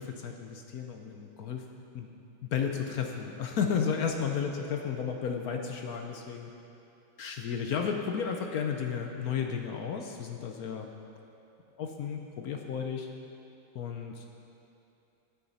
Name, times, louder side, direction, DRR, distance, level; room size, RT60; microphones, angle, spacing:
voice 1, 0.0-1.6 1.9-2.1 2.4-6.5 7.2-10.9 11.8-13.1 13.7-14.2, left 6 dB, 65° left, 3 dB, 0.9 m, -33 dB
15.0 x 8.6 x 4.1 m, 2.7 s
omnidirectional pair, 2.2 m